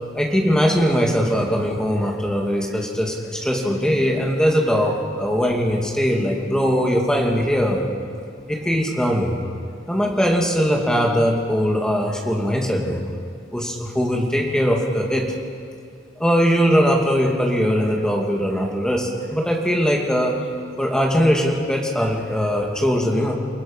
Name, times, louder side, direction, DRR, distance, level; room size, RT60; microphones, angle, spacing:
voice 1, 0.1-7.8 8.5-9.4 9.9-13.0 13.5-15.3 16.2-20.4 20.8-23.3, equal, 5° left, 0 dB, 2.4 m, -20 dB
29.0 x 19.0 x 5.7 m, 2.3 s
head